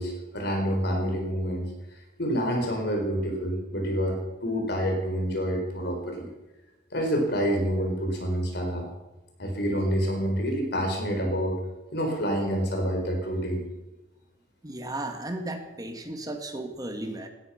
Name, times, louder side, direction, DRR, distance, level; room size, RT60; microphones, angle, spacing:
voice 1, 0.0-1.7 2.2-6.3 6.9-8.9 9.4-11.6 11.9-13.6, equal, 60° left, 3 dB, 4.3 m, -27 dB
voice 2, 14.6-17.3, right 1 dB, 20° right, 5 dB, 1.8 m, -35 dB
17.5 x 13.0 x 5.8 m, 1.0 s
head